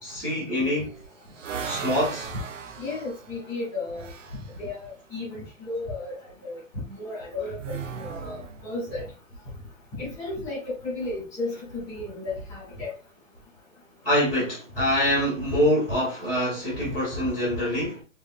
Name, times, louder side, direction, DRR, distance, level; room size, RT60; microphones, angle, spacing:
voice 1, 0.0-0.9 1.6-2.3 14.0-18.0, equal, 5° right, 1.0 m, -25 dB
sound 1, 0.6-4.5 7.5-9.0, right 7 dB, 70° right, 0.7 m, -37 dB
voice 2, 2.8-4.1 4.6-6.1 6.4-9.0 10.0-12.9 16.8-16.9, left 2 dB, 10° left, 1.9 m, -34 dB
5.4 x 3.4 x 2.4 m
hypercardioid pair, 175°, 40 cm